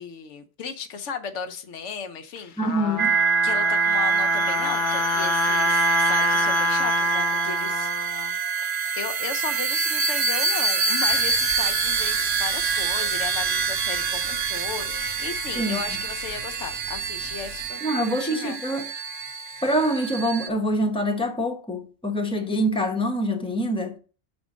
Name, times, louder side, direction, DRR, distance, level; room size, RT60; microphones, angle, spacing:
voice 1, 0.0-2.5 3.4-8.2 8.9-18.6, left 6 dB, 80° left, 1.1 m, -35 dB
Trumpet, 2.4-8.3, left 7 dB, 55° left, 0.7 m, -28 dB
voice 2, 2.6-3.2 15.6-15.8 17.8-18.9 19.6-24.0, equal, 5° left, 1.0 m, -25 dB
sound 1, 3.0-20.5, right 5 dB, 45° right, 0.6 m, -25 dB
sound 2, 11.1-17.7, right 1 dB, 80° right, 2.4 m, -40 dB
6.2 x 4.3 x 6.1 m
omnidirectional pair, 1.2 m